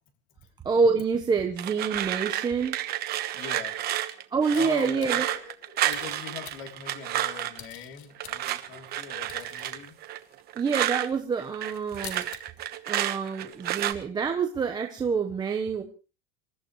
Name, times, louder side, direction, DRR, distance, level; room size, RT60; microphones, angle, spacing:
voice 1, 0.6-2.8 4.3-5.3 10.6-12.3 12.9-15.8, right 5 dB, 10° right, 3 dB, 1.1 m, -27 dB
sound 1, 1.6-7.7 8.2-11.1 11.4-13.9, right 13 dB, 30° right, 1.2 m, -31 dB
voice 2, 3.3-3.8 4.5-10.0, left 8 dB, 40° left, 5 dB, 3.2 m, -41 dB
sound 2, 4.5-5.4 5.9-6.8 7.5-8.7 9.0-9.7 10.0-10.4 10.9-11.0 11.5-11.6 11.8-12.4 12.8-13.0 13.3-14.2, left 11 dB, 70° left, 3.1 m, -46 dB
27.0 x 14.5 x 3.2 m, 0.35 s
supercardioid pair, 170°, 33 cm